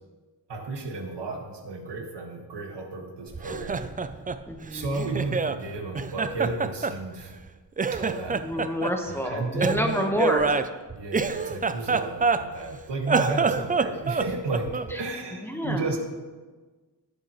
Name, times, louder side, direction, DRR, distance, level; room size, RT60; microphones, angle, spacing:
voice 1, 0.5-3.9 4.7-7.3 7.9-8.4 9.1-10.0 10.9-16.0, right 3 dB, 85° right, 2 dB, 1.7 m, -33 dB
Laughter, 3.3-5.6 5.9-7.5 7.8-8.9 9.6-12.7 13.0-15.0, right 4 dB, 25° right, 0.3 m, -27 dB
voice 2, 4.5-5.1 8.3-10.5 11.9-12.0 14.9-15.0 15.4-15.9, equal, 5° left, 2 dB, 1.1 m, -29 dB
18.5 x 7.3 x 3.0 m, 1.3 s
wide cardioid pair, 130°, 41 cm